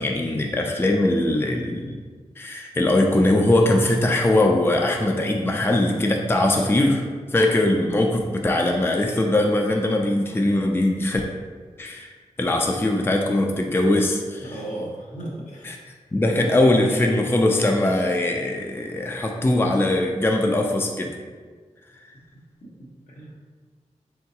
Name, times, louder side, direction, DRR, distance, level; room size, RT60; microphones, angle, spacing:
voice 1, 0.0-2.0 2.4-7.0 7.3-11.2 11.8-12.1 12.4-14.4 15.7-15.8 16.1-21.1, left 1 dB, 20° left, 1 dB, 0.4 m, -21 dB
voice 2, 14.4-15.8 16.2-16.4 22.8-23.4, right 1 dB, 75° left, -4 dB, 1.0 m, -36 dB
3.8 x 3.4 x 2.8 m, 1.5 s
cardioid pair, 50°, 13 cm